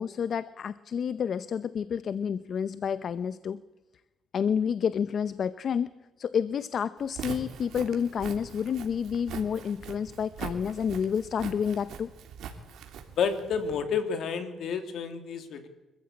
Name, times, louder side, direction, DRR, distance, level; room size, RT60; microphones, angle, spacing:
voice 1, 0.0-3.6 4.3-5.9 6.2-12.1, left 7 dB, 55° left, 15 dB, 0.7 m, -29 dB
Walk footsteps, 7.0-13.8, right 7 dB, 75° right, 3.1 m, -42 dB
voice 2, 13.2-15.7, left 6 dB, 70° left, 8 dB, 3.0 m, -30 dB
25.0 x 14.5 x 8.7 m, 1.1 s
cardioid pair, 90°, 0 cm